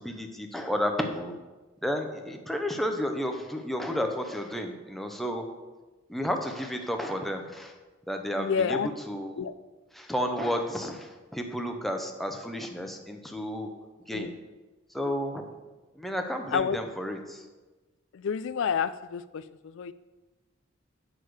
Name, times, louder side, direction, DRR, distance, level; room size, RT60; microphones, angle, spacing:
voice 1, 0.0-1.3 1.8-5.5 6.1-7.8 8.1-9.5 9.9-14.3 14.9-15.5 15.9-17.5, equal, ahead, 3 dB, 0.7 m, -32 dB
voice 2, 8.4-8.9 9.4-9.5 14.1-14.3 16.5-16.8 18.1-19.9, left 6 dB, 65° left, 15 dB, 0.4 m, -29 dB
8.3 x 6.3 x 4.7 m, 1.2 s
head